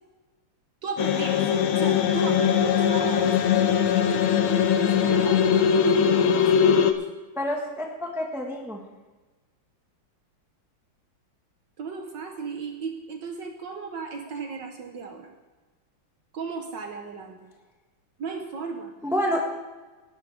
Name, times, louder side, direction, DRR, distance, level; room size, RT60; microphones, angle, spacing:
voice 1, 0.8-1.4 1.7-6.5 11.8-15.3 16.3-17.5 18.2-18.9, right 5 dB, 60° right, 4 dB, 1.7 m, -36 dB
sound 1, 1.0-6.9, left 8 dB, 80° left, 1.8 m, -21 dB
voice 2, 7.3-8.8 19.0-19.4, equal, ahead, 0 dB, 1.2 m, -28 dB
18.5 x 11.0 x 3.5 m, 1.2 s
omnidirectional pair, 2.3 m